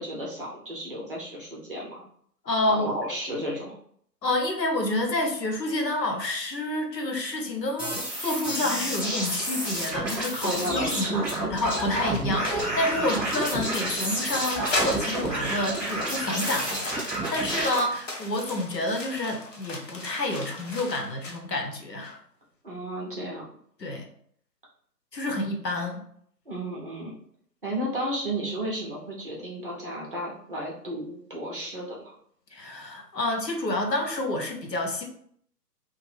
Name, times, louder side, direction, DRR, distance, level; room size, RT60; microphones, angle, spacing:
voice 1, 0.0-2.0 2.7-3.8 10.4-11.2 13.0-13.2 22.6-23.5 26.5-27.2 27.6-32.1, right 1 dB, 35° right, -4 dB, 0.6 m, -33 dB
voice 2, 2.4-2.9 4.2-22.2 23.8-24.1 25.1-26.0 32.5-35.1, left 1 dB, 90° left, 3 dB, 0.8 m, -29 dB
sound 1, 7.8-17.7, right 1 dB, 5° left, 0.7 m, -30 dB
sound 2, 11.6-21.4, left 2 dB, 50° left, 0.7 m, -37 dB
2.6 x 2.0 x 3.2 m, 0.64 s
figure-of-eight pair, 140°, 49 cm